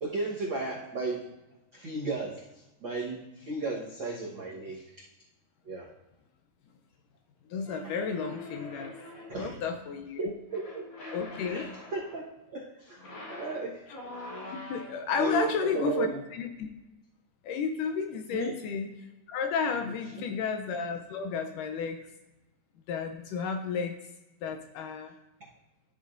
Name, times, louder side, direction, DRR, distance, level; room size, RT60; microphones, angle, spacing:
voice 1, 0.0-1.3 1.7-5.0 5.6-5.9 9.3-9.6 10.2-10.8 11.4-11.7 11.9-12.2 12.5-13.8 15.2-16.2 18.3-18.6 20.1-20.2, right 2 dB, 85° right, -5 dB, 1.0 m, -34 dB
voice 2, 7.5-8.9 9.3-10.2 11.1-11.7 14.5-16.7 17.4-18.9 19.3-22.0 22.9-24.0 24.4-25.1, left 5 dB, 75° left, 5 dB, 2.0 m, -32 dB
sound 1, 7.6-9.5 10.5-12.3 12.9-15.2, left 2 dB, 45° left, 1.7 m, -44 dB
12.5 x 7.0 x 2.6 m, 0.98 s
omnidirectional pair, 4.2 m